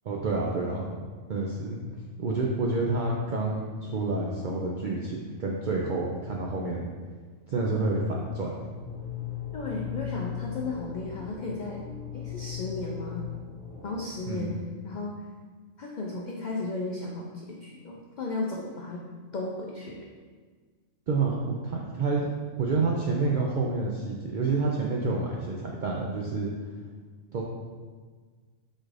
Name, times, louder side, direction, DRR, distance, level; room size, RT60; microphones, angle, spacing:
voice 1, 0.0-1.0 1.3-1.8 2.2-6.9 7.5-8.7 14.3-14.6 21.1-21.4 21.6-22.3 22.6-26.5 27.3-27.4, right 3 dB, 75° right, -2 dB, 0.4 m, -28 dB
sound 1, 8.7-14.8, left 10 dB, 25° left, 1.2 m, -38 dB
voice 2, 9.5-11.8 12.1-13.3 13.8-14.6 14.8-15.1 15.8-19.0 19.3-20.0, left 2 dB, 80° left, -2 dB, 0.4 m, -34 dB
4.3 x 2.5 x 4.7 m, 1.5 s
omnidirectional pair, 1.4 m